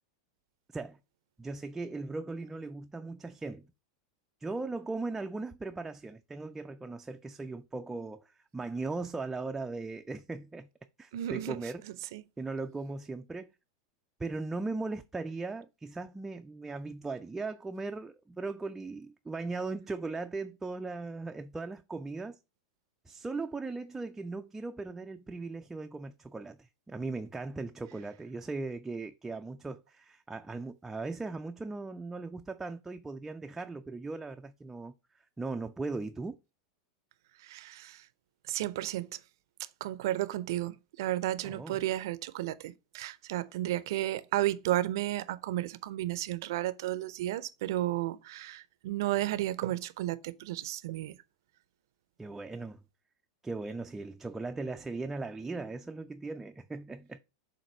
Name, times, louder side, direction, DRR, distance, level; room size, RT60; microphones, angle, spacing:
voice 1, 1.4-3.7 4.4-10.7 11.0-11.8 12.4-13.5 14.2-22.4 23.1-34.9 35.4-36.4 41.4-41.8 52.2-52.8 53.4-57.2, right 3 dB, 10° right, 0.4 m, -38 dB
voice 2, 11.1-11.6 12.1-12.2 37.4-38.1 38.5-39.1 39.8-51.2, right 14 dB, 65° right, 0.5 m, -33 dB
7.2 x 2.6 x 5.2 m
hypercardioid pair, 100°, 2 cm